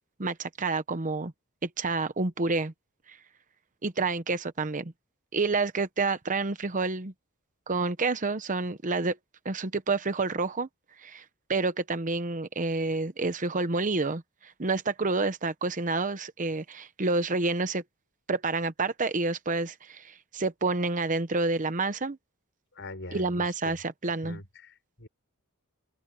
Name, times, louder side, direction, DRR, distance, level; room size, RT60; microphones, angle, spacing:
voice 1, 0.2-1.3 1.6-2.7 3.1-3.2 3.8-4.9 5.3-7.1 7.7-9.2 9.4-10.7 11.0-11.2 11.5-17.8 18.3-22.2 23.1-24.4, right 3 dB, 35° right, 0.9 m, -29 dB
voice 2, 22.8-23.7 24.2-25.1, left 2 dB, 55° left, 6.4 m, -43 dB
open air
head